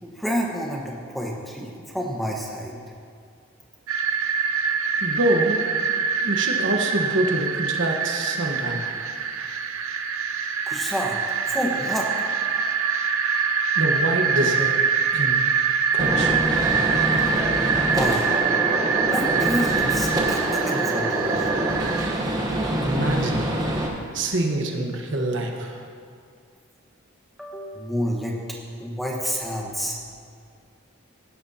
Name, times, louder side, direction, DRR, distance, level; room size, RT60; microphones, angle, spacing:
voice 1, 0.0-2.8 10.7-11.2 11.5-12.1 17.9-18.4 19.0-21.5 27.4-28.4 28.8-30.0, equal, ahead, -2 dB, 1.3 m, -29 dB
sound 1, 3.9-22.1, right 6 dB, 85° right, 0.7 m, -24 dB
voice 2, 5.0-5.6 6.2-8.9 13.7-14.7 15.1-15.4 15.9-16.4 22.8-23.4 24.1-25.8, right 1 dB, 60° right, 2 dB, 1.3 m, -25 dB
Gunshot gunfire, 16.0-23.9, right 1 dB, 20° right, 1.1 m, -25 dB
16.5 x 11.0 x 2.9 m, 2.3 s
head